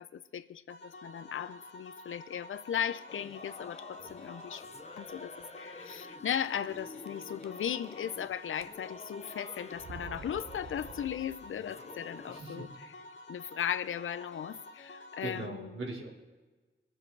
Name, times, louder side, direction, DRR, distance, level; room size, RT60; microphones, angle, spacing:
voice 1, 0.0-4.6 5.0-12.9 13.3-15.8, left 9 dB, 90° left, 13 dB, 0.6 m, -37 dB
sound 1, 0.7-15.5, left 2 dB, 65° left, 2.2 m, -50 dB
Singing / Musical instrument, 3.1-12.4, left 3 dB, 35° left, 0.8 m, -49 dB
sound 2, 4.0-4.4 5.0-5.1 5.4-5.5 6.4-6.8 7.1-8.2 8.5-9.1 9.7-11.7, right 6 dB, 55° right, 0.6 m, -50 dB
voice 2, 12.3-12.7 15.2-16.1, right 2 dB, 80° right, -4 dB, 3.4 m, -40 dB
21.0 x 7.5 x 4.6 m, 1.3 s
cardioid pair, 60°, 20 cm